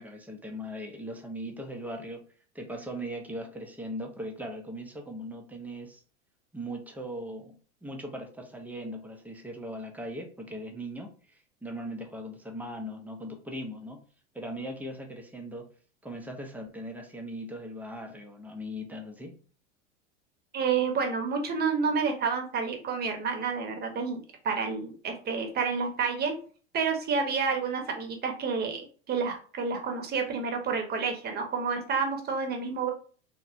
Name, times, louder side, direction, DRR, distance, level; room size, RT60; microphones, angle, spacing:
voice 1, 0.0-2.2 2.5-6.0 6.5-7.5 7.8-14.0 14.3-15.7 16.0-19.4, equal, 5° right, 2 dB, 0.4 m, -39 dB
voice 2, 20.5-26.3 26.7-32.9, right 5 dB, 25° right, 4 dB, 0.8 m, -29 dB
3.1 x 2.1 x 2.4 m, 0.41 s
hypercardioid pair, 85°, 35 cm